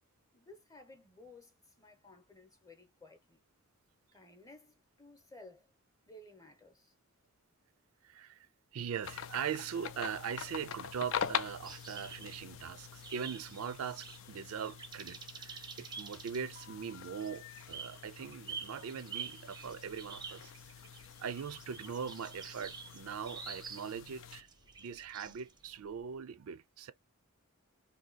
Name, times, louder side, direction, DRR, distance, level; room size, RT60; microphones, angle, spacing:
voice 1, 0.3-3.4 4.1-5.7 6.1-6.9, left 2 dB, 15° left, 0.8 m, -56 dB
voice 2, 8.0-8.5 8.7-20.8 21.2-24.5 24.8-26.9, right 7 dB, 70° right, 0.4 m, -41 dB
sound 1, 9.0-24.4, left 8 dB, 60° left, 0.4 m, -45 dB
sound 2, 11.6-12.6 13.0-25.7, right 6 dB, 20° right, 0.5 m, -48 dB
sound 3, 19.5-26.2, left 1 dB, 85° left, 1.1 m, -68 dB
2.8 x 2.7 x 3.9 m
head